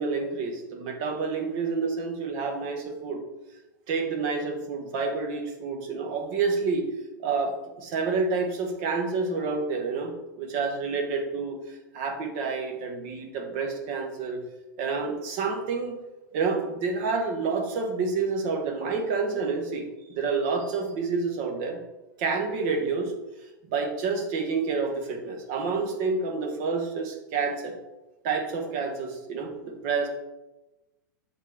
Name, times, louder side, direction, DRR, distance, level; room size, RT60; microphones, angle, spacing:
voice 1, 0.0-3.2 3.9-6.9 7.2-7.5 7.8-11.6 11.9-14.4 14.8-15.9 16.3-21.8 22.2-23.1 23.7-27.7 28.2-30.1, right 4 dB, 50° right, 3 dB, 1.7 m, -28 dB
7.2 x 3.7 x 5.7 m, 1.0 s
figure-of-eight pair, 100°, 11 cm